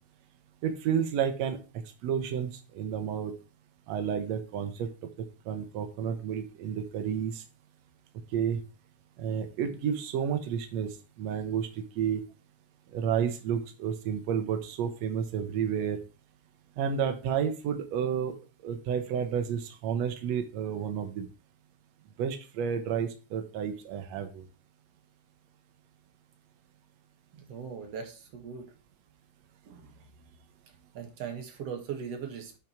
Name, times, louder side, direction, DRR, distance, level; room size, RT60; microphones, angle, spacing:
voice 1, 0.6-1.6 2.0-3.3 3.9-4.9 5.5-7.4 8.3-8.6 9.2-10.9 11.2-12.2 12.9-16.0 16.8-18.3 18.6-21.3 22.2-24.4, right 8 dB, 90° right, 7 dB, 1.5 m, -31 dB
voice 2, 27.3-28.7 29.6-30.1 30.9-32.6, right 7 dB, 50° right, 4 dB, 2.3 m, -39 dB
9.1 x 5.3 x 4.4 m, 0.33 s
omnidirectional pair, 4.5 m